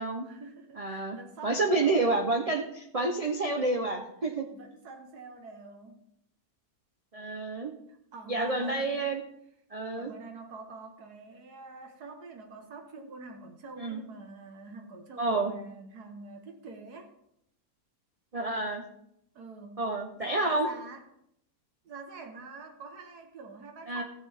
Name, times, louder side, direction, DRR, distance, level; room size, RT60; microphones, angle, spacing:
voice 1, 0.2-2.2 4.2-6.0 7.9-9.1 10.0-17.1 19.4-19.8 20.2-21.0 21.8-24.0, right 3 dB, 75° right, 4 dB, 1.7 m, -46 dB
voice 2, 0.8-1.2 1.4-4.5 7.1-7.7 8.3-9.2 9.7-10.1 13.8-14.0 15.2-15.5 18.3-18.8 19.8-20.7 23.9-24.0, right 2 dB, 40° right, 3 dB, 0.5 m, -29 dB
14.0 x 7.6 x 3.4 m, 0.77 s
omnidirectional pair, 1.7 m